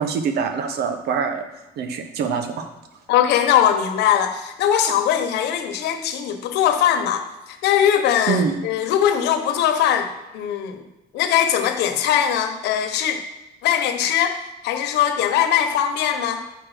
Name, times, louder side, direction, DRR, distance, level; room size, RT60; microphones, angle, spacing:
voice 1, 0.0-1.5 1.8-2.7 8.3-8.6, right 6 dB, 70° right, 7 dB, 1.3 m, -24 dB
voice 2, 3.1-10.8 11.1-13.2 13.6-14.4 14.6-16.4, left 9 dB, 85° left, 7 dB, 1.1 m, -20 dB
8.3 x 6.3 x 5.0 m, 1.0 s
cardioid pair, 110°, 17 cm